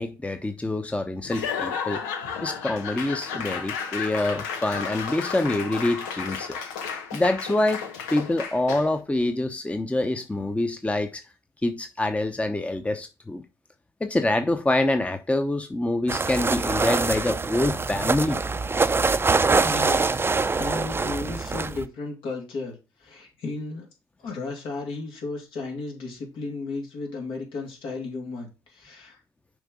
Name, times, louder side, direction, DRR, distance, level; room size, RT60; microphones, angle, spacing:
voice 1, 0.0-2.0 2.4-6.6 7.1-7.9 8.1-11.2 11.6-13.4 14.0-18.4, left 2 dB, 15° left, 0.9 m, -26 dB
Laughter / Applause / Crowd, 1.2-9.0, left 6 dB, 90° left, 0.9 m, -33 dB
sound 1, 16.1-21.8, right 4 dB, 25° right, 0.6 m, -24 dB
voice 2, 19.5-20.3 20.6-23.9 24.2-29.2, left 3 dB, 70° left, 2.6 m, -34 dB
6.4 x 4.5 x 5.0 m
hypercardioid pair, 50°, 9 cm